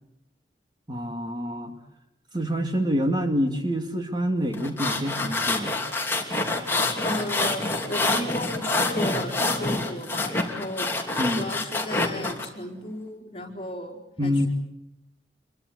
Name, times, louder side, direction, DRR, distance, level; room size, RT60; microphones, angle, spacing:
voice 1, 0.9-1.7 2.3-5.8 11.2-11.5 14.2-14.5, equal, 25° right, 5 dB, 2.4 m, -26 dB
sound 1, 4.5-12.5, left 2 dB, 10° left, 2.9 m, -27 dB
voice 2, 7.0-10.9 11.4-14.5, left 1 dB, 30° left, 1 dB, 4.3 m, -34 dB
26.5 x 23.0 x 8.1 m, 0.83 s
head